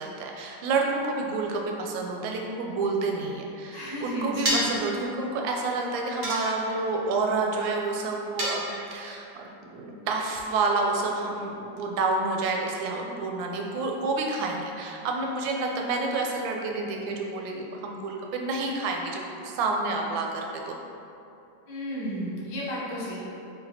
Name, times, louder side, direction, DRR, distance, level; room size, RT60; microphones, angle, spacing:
voice 1, 0.0-20.8, right 3 dB, 90° right, 1 dB, 1.3 m, -29 dB
voice 2, 3.7-4.8 21.7-23.2, equal, 75° left, -6 dB, 1.6 m, -33 dB
sound 1, 4.5-4.9 6.2-6.9 8.4-9.1, right 1 dB, 75° right, 0.6 m, -28 dB
4.0 x 4.0 x 2.7 m, 2.8 s
omnidirectional pair, 2.0 m